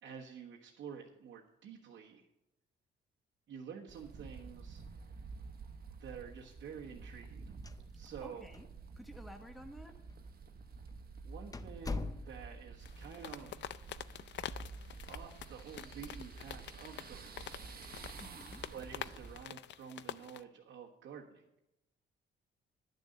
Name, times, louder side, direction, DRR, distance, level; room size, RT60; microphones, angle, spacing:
voice 1, 0.0-2.2 3.5-4.8 6.0-7.5 7.9-8.5 11.2-13.5 15.1-17.6 18.7-21.4, right 7 dB, 70° right, -3 dB, 1.4 m, -49 dB
sound 1, 3.9-19.4, right 4 dB, 50° right, 1.3 m, -50 dB
sound 2, 7.5-8.3 8.5-8.6 9.4-9.5 10.3-10.5 10.9-11.0 11.5-12.7, left 3 dB, 20° left, 0.6 m, -41 dB
voice 2, 8.2-8.7 9.0-9.9 18.2-18.6, equal, ahead, 5 dB, 1.1 m, -52 dB
sound 3, 12.8-20.4, left 11 dB, 65° left, 0.5 m, -47 dB
11.0 x 6.6 x 7.7 m, 0.89 s
cardioid pair, 90°, 20 cm